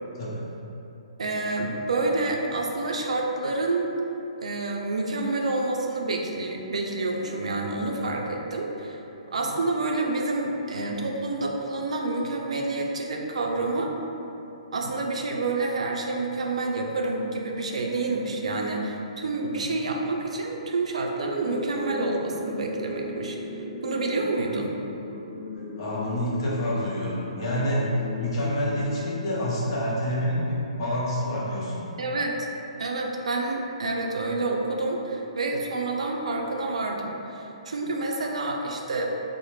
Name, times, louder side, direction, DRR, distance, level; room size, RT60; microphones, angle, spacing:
voice 1, 1.2-3.9 4.4-9.0 9.3-13.9 14.7-23.4 23.8-24.8 32.0-32.4 32.8-39.1, right 2 dB, 70° right, 0 dB, 0.4 m, -28 dB
sound 1, 21.2-30.2, left 2 dB, 75° left, 1.0 m, -37 dB
voice 2, 25.8-27.9 28.2-31.8, equal, 45° left, -6 dB, 1.0 m, -27 dB
4.8 x 2.0 x 3.1 m, 3.0 s
figure-of-eight pair, 125°, 4 cm